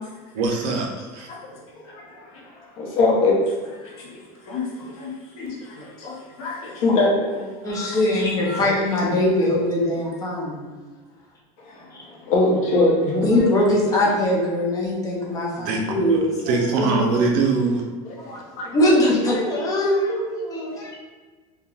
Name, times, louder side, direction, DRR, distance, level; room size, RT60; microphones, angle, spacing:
voice 1, 0.3-1.3 15.6-16.2 16.5-17.9, right 4 dB, 60° right, 0 dB, 0.6 m, -23 dB
voice 2, 1.0-8.0 8.4-8.6 11.6-13.3 15.4-15.5 18.0-18.8 20.5-20.9, left 2 dB, 85° left, -3 dB, 0.9 m, -25 dB
voice 3, 7.6-10.7 11.9-12.0 13.2-17.1 18.2-21.0, left 1 dB, 20° left, -3 dB, 0.6 m, -22 dB
3.4 x 2.2 x 2.3 m, 1.3 s
cardioid pair, 150°, 18 cm